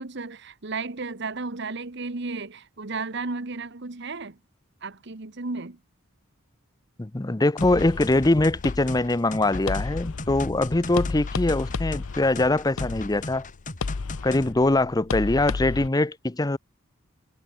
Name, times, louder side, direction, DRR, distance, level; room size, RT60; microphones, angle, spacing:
voice 1, 0.0-4.4 4.8-5.8, right 3 dB, 55° right, 1.2 m, -33 dB
voice 2, 7.0-13.5 14.2-16.6, left 2 dB, 20° left, 0.6 m, -23 dB
sound 1, 7.6-15.9, left 4 dB, 80° left, 0.7 m, -33 dB
sound 2, 7.6-14.5, left 2 dB, 40° left, 2.2 m, -38 dB
head